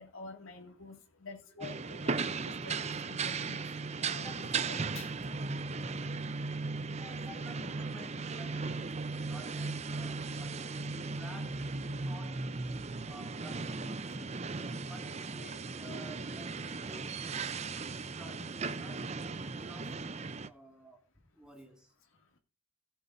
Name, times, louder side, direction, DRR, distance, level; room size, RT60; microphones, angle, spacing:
voice 1, 0.0-5.1, left 3 dB, 80° left, 2.4 m, -49 dB
sound 1, 1.6-20.5, right 4 dB, 30° right, 0.6 m, -37 dB
sound 2, 4.2-10.3, right 2 dB, 75° right, 2.0 m, -61 dB
voice 2, 6.9-14.4 14.8-17.6 17.8-19.1 19.4-20.1 20.4-21.1 21.3-21.9, equal, 5° right, 2.1 m, -52 dB
17.5 x 8.1 x 2.6 m
head